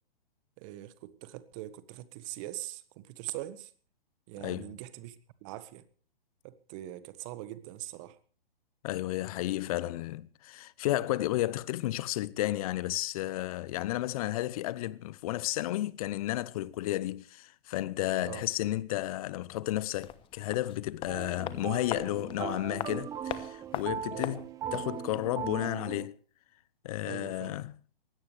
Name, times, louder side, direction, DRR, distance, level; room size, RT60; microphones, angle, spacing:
voice 1, 0.6-3.7 4.3-5.2 5.4-5.8 6.4-8.2 18.2-18.4 24.1-24.3 27.0-27.6, right 15 dB, 35° right, 1.4 m, -42 dB
voice 2, 4.4-4.8 8.8-24.4 24.7-26.2 26.8-27.7, left 15 dB, 40° left, 0.8 m, -32 dB
sound 1, 20.0-25.0 25.2-25.3, left 11 dB, 15° left, 1.0 m, -41 dB
sound 2, 21.1-26.1, right 9 dB, 10° right, 0.6 m, -39 dB
21.0 x 17.0 x 3.3 m
hypercardioid pair, 130°, 30 cm